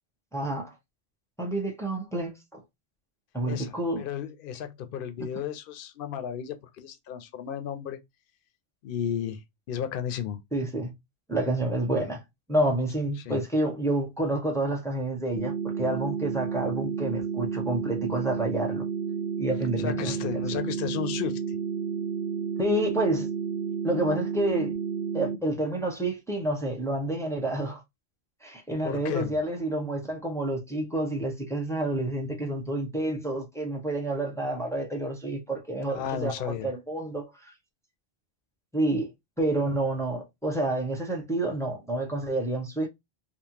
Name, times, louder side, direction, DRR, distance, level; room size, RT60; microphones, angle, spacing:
voice 1, 0.3-0.7 1.4-2.6 3.3-4.0 10.5-10.9 11.3-12.2 12.5-18.9 19.4-20.4 22.6-23.3 23.8-24.7 25.1-27.8 28.4-37.5 38.7-39.1 39.4-42.9, right 1 dB, 5° left, 0.6 m, -29 dB
voice 2, 3.5-8.0 8.8-9.4 9.7-10.4 13.2-13.4 19.8-21.6 28.8-29.4 35.9-36.7, left 9 dB, 65° left, 0.7 m, -33 dB
sound 1, 15.4-25.4, right 7 dB, 60° right, 0.7 m, -31 dB
3.5 x 2.0 x 2.8 m
omnidirectional pair, 1.1 m